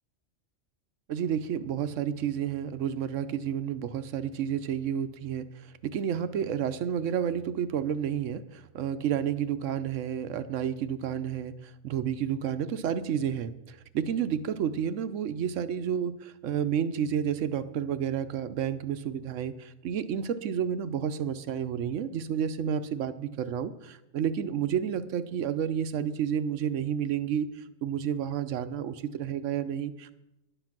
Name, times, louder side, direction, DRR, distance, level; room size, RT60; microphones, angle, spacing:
voice 1, 1.1-30.2, right 8 dB, 90° right, 11 dB, 1.1 m, -31 dB
11.5 x 10.0 x 5.9 m, 0.91 s
omnidirectional pair, 1.2 m